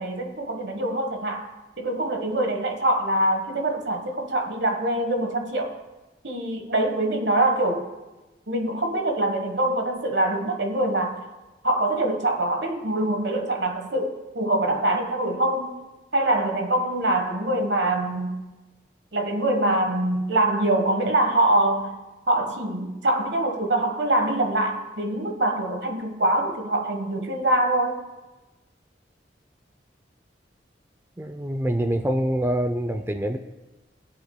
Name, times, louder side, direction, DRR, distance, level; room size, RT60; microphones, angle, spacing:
voice 1, 0.0-1.5 1.8-5.8 6.2-7.9 8.5-11.2 11.6-15.7 16.1-18.4 19.1-22.0 22.3-28.0, right 1 dB, 75° right, 4 dB, 1.3 m, -24 dB
voice 2, 31.2-33.4, right 1 dB, 15° right, 7 dB, 0.5 m, -25 dB
21.5 x 7.9 x 2.2 m, 1.1 s
head